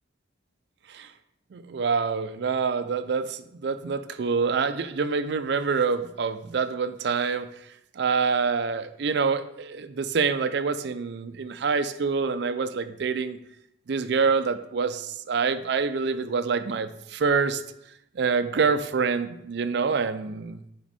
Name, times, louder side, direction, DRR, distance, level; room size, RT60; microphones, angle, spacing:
voice 1, 1.5-7.5 7.9-13.4 13.9-17.6 18.1-20.6, right 5 dB, 60° right, 11 dB, 0.4 m, -26 dB
6.0 x 4.4 x 4.2 m, 0.79 s
head